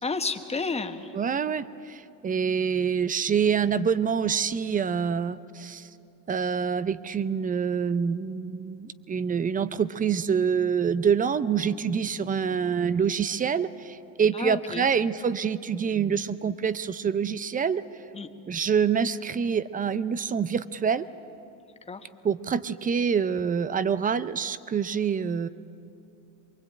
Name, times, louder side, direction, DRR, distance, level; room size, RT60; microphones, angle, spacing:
voice 1, 0.0-1.1 14.3-14.9 18.1-18.3 21.9-22.1, left 4 dB, 15° left, 6 dB, 1.5 m, -31 dB
voice 2, 1.1-5.9 6.3-17.8 18.5-21.1 22.2-25.5, right 6 dB, 20° right, 15 dB, 0.6 m, -26 dB
23.5 x 23.0 x 8.9 m, 2.7 s
supercardioid pair, 110°, 46 cm